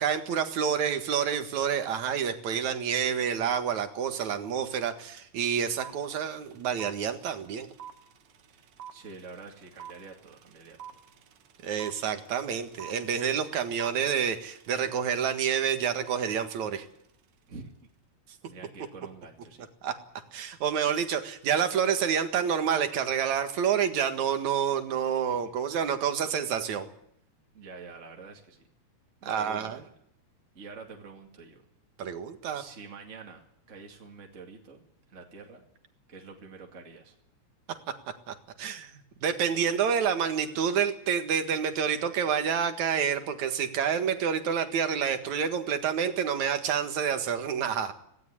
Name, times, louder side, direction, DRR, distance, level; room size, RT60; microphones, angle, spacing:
voice 1, 0.0-7.7 11.6-16.9 19.8-19.9 20.3-26.9 29.2-29.8 32.0-32.6 38.3-38.9 39.2-47.9, right 7 dB, 80° right, 8 dB, 3.1 m, -28 dB
sound 1, 5.2-5.3 5.5-16.6, right 9 dB, 60° right, 1.9 m, -47 dB
voice 2, 8.5-10.8 17.5-17.7 18.4-19.6 25.3-25.4 27.5-28.6 29.2-29.9 30.5-31.6 32.5-34.8 35.1-35.6 36.1-37.2, right 4 dB, 25° right, 1 dB, 2.4 m, -47 dB
17.5 x 17.0 x 9.7 m, 0.72 s
omnidirectional pair, 3.3 m